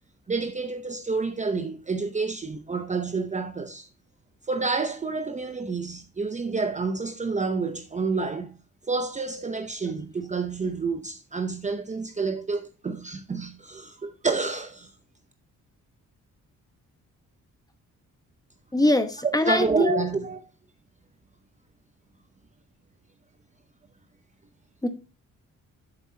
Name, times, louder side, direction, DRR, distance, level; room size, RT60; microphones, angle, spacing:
voice 1, 0.3-3.9 4.5-8.6 8.9-14.9 19.2-20.4, right 4 dB, 25° right, 0.7 m, -29 dB
voice 2, 18.7-20.1 24.8-24.9, left 1 dB, 10° left, 1.0 m, -23 dB
10.5 x 7.4 x 2.8 m
cardioid pair, 130°, 31 cm